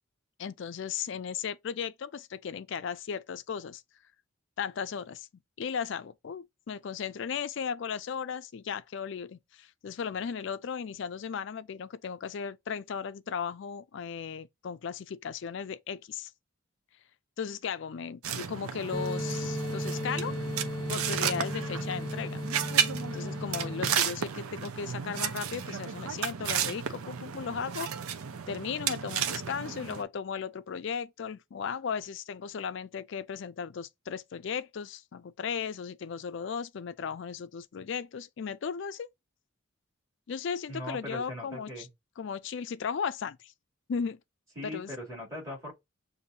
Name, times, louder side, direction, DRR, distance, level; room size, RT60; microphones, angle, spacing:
voice 1, 0.4-3.8 4.6-5.3 5.6-16.3 17.4-20.4 20.9-22.4 23.1-27.9 28.5-39.1 40.3-41.9 42.2-43.5 43.9-44.2 44.6-44.9, left 6 dB, 55° left, 0.4 m, -36 dB
sound 1, 18.2-30.0, right 7 dB, 90° right, 0.6 m, -33 dB
sound 2, 18.9-23.9, left 1 dB, 20° left, 0.8 m, -35 dB
voice 2, 40.7-41.9 44.6-45.7, left 1 dB, 15° right, 2.8 m, -39 dB
6.6 x 2.6 x 2.8 m
head